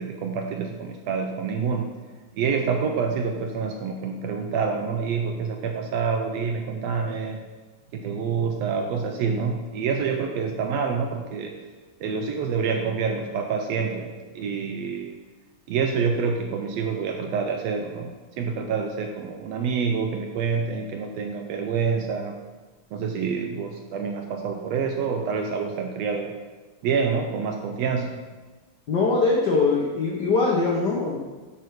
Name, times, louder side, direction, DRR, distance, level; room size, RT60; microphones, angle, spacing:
voice 1, 0.0-1.9 2.3-7.4 7.9-11.5 12.0-15.1 15.7-18.1 18.4-22.3 22.9-26.3 26.8-28.2, right 5 dB, 75° right, 4 dB, 1.6 m, -27 dB
voice 2, 28.9-31.2, left 3 dB, 70° left, -3 dB, 1.0 m, -22 dB
9.1 x 6.1 x 4.8 m, 1.3 s
omnidirectional pair, 3.4 m